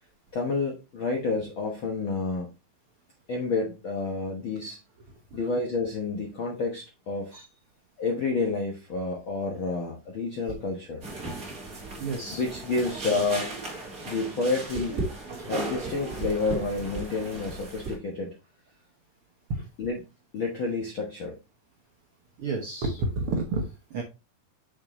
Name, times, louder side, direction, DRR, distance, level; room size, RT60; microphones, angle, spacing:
voice 1, 0.3-2.5 3.3-4.8 5.3-7.3 8.0-11.0 12.3-13.5 14.0-15.0 15.5-18.3 19.8-20.0 20.3-21.4, left 3 dB, 70° left, 0 dB, 1.2 m, -29 dB
sound 1, 11.0-17.9, right 2 dB, 30° right, 2.2 m, -36 dB
voice 2, 12.0-12.4 15.4-15.5 19.5-19.7 22.4-24.0, right 3 dB, 90° right, 2 dB, 1.2 m, -30 dB
6.6 x 6.4 x 3.1 m, 0.27 s
omnidirectional pair, 4.1 m